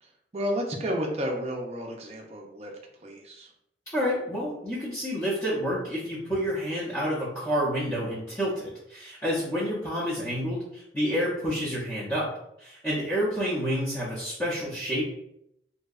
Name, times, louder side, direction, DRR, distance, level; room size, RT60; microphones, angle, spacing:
voice 1, 0.0-2.7 3.0-3.5, equal, 35° right, 1 dB, 0.4 m, -32 dB
voice 2, 3.9-12.3 12.6-15.0, equal, 15° left, -11 dB, 0.5 m, -29 dB
2.6 x 2.1 x 2.3 m, 0.78 s
head